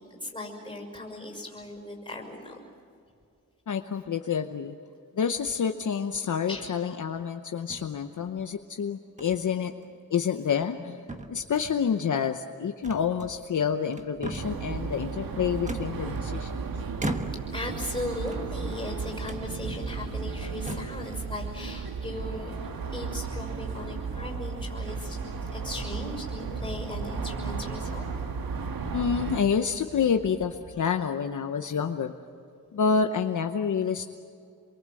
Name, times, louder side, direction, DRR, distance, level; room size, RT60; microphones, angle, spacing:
voice 1, 0.1-2.5 6.5-6.7 17.5-25.2 25.5-28.1, left 1 dB, 15° left, 1 dB, 6.0 m, -38 dB
voice 2, 3.7-4.8 5.1-9.7 10.1-16.6 28.9-32.1 32.7-34.0, left 6 dB, 60° left, 6 dB, 0.9 m, -28 dB
sound 1, 6.5-6.9 7.7-8.4 9.2-9.4 9.8-10.0 10.5-10.8 11.1-11.8 12.8-13.6 13.9-14.7 15.7-16.5 17.0-17.6 18.2-18.9 19.2-19.5 20.1-20.2 20.5-21.1, right 1 dB, 20° right, 1.4 m, -38 dB
sound 2, 14.4-29.4, right 5 dB, 85° right, 1.6 m, -34 dB
sound 3, 23.6-30.8, right 1 dB, 55° right, 6.5 m, -49 dB
28.5 x 23.0 x 7.7 m, 2.4 s
wide cardioid pair, 150°, 35 cm